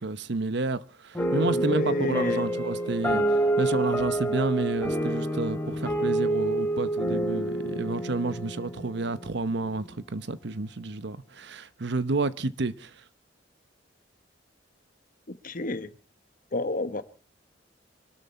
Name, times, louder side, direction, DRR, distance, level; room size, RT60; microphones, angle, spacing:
voice 1, 0.0-12.9, right 3 dB, 65° right, 0.9 m, -30 dB
sound 1, 1.2-9.7, right 1 dB, 10° left, 2.6 m, -28 dB
voice 2, 1.5-2.5 15.3-15.9 16.5-17.0, left 2 dB, 50° left, 1.0 m, -30 dB
25.0 x 12.5 x 4.2 m
head